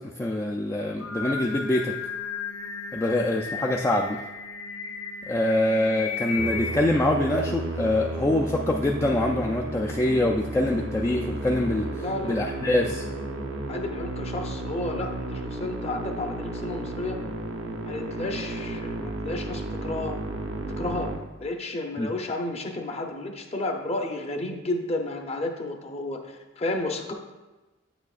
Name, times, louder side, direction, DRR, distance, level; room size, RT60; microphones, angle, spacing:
voice 1, 0.0-1.9 2.9-4.2 5.3-13.1 22.0-22.1, left 1 dB, 15° left, -1 dB, 0.3 m, -25 dB
Singing, 0.8-6.8, left 5 dB, 75° left, 0.7 m, -34 dB
Musical instrument, 6.4-21.2, right 2 dB, 75° right, 0.7 m, -33 dB
voice 2, 11.9-12.4 13.7-17.2 17.8-20.2 20.8-21.1 21.4-27.1, left 2 dB, 30° left, 3 dB, 0.7 m, -32 dB
8.4 x 7.0 x 2.4 m, 1.1 s
head